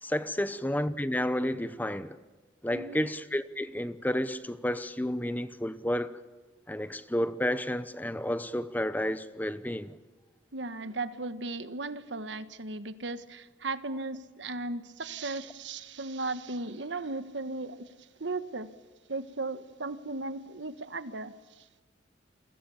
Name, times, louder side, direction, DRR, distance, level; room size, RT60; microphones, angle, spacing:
voice 1, 0.0-2.2 2.6-6.2 6.7-9.9, left 1 dB, 10° left, 0.8 m, -31 dB
voice 2, 2.7-3.0 10.5-17.9 18.2-18.7 19.1-21.6, right 3 dB, 65° right, 1.5 m, -36 dB
29.5 x 23.5 x 7.2 m
head